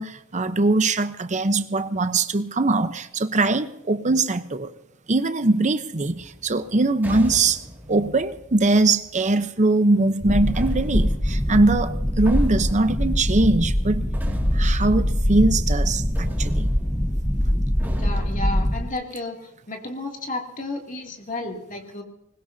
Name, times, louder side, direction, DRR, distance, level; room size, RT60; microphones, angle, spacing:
voice 1, 0.0-4.7 5.1-14.0 14.5-16.7, right 2 dB, 35° right, 0.9 m, -21 dB
sound 1, 6.1-9.5 10.5-15.9 16.2-19.0, equal, 10° right, 2.3 m, -39 dB
sound 2, 10.2-18.9, equal, 10° left, 1.2 m, -23 dB
voice 2, 17.9-19.4 19.7-22.0, left 2 dB, 40° left, 2.6 m, -32 dB
25.5 x 20.5 x 2.8 m
head